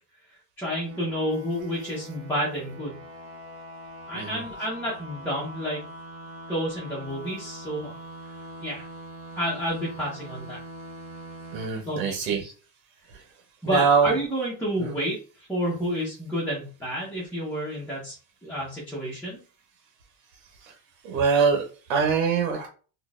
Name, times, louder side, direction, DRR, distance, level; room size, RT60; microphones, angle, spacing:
voice 1, 0.6-3.0 4.1-5.9 6.5-7.9 8.6-8.9 9.3-10.6 11.8-12.2 12.4-12.5 13.6-18.1 18.4-19.4, equal, 5° left, -7 dB, 1.1 m, -30 dB
sound 1, 0.9-11.7, right 1 dB, 35° right, 1.1 m, -42 dB
voice 2, 4.1-4.4 11.5-12.4 13.1-13.3 13.6-14.2 14.8-15.0 20.4-20.8 21.0-22.7, right 5 dB, 90° right, 2 dB, 1.0 m, -24 dB
3.7 x 2.5 x 2.5 m, 0.37 s
cardioid pair, 140°, 40 cm